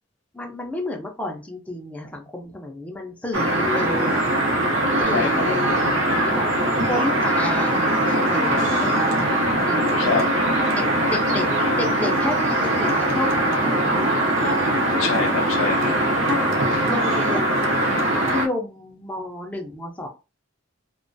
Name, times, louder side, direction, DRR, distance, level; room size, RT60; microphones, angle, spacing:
voice 1, 0.3-4.3 5.1-6.5 6.9-9.4 9.7-10.2 10.7-14.6 14.9-15.4 16.3-16.5 16.9-17.7 18.1-20.1, left 1 dB, 5° left, 0.3 m, -31 dB
sound 1, 3.3-18.5, right 1 dB, 75° right, 0.6 m, -21 dB
voice 2, 4.9-5.5 10.0-11.1 14.8-15.9, left 4 dB, 85° left, 0.5 m, -27 dB
2.3 x 2.1 x 2.5 m
head